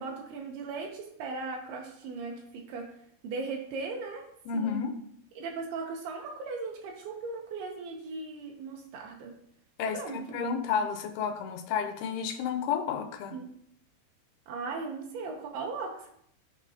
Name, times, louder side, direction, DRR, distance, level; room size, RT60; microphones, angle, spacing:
voice 1, 0.0-2.9 3.2-4.2 4.5-4.8 5.4-9.3 9.9-10.4 13.3-13.5 14.5-16.1, right 4 dB, 85° right, 1 dB, 2.8 m, -38 dB
voice 2, 4.5-4.9 9.8-13.4, left 6 dB, 85° left, 6 dB, 2.6 m, -31 dB
12.0 x 4.1 x 2.7 m, 0.69 s
omnidirectional pair, 4.5 m